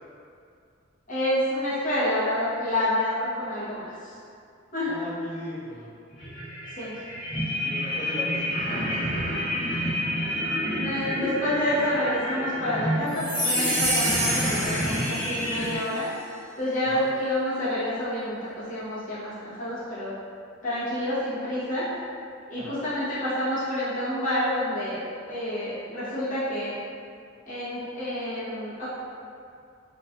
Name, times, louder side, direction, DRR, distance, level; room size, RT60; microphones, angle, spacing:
voice 1, 1.1-4.1 4.7-4.9 6.8-6.9 10.7-16.1 16.6-20.1 20.6-21.8 22.5-25.0 25.3-26.8 27.5-28.9, left 1 dB, 40° left, -12 dB, 0.8 m, -28 dB
voice 2, 4.9-5.9 7.6-9.3 16.8-17.0 22.6-22.8, equal, 85° left, -10 dB, 0.9 m, -38 dB
sound 1, 6.1-15.8, equal, 65° left, 1.4 m, -29 dB
sound 2, 13.1-15.7, equal, 30° right, 0.9 m, -28 dB
3.0 x 2.5 x 2.2 m, 2.4 s
head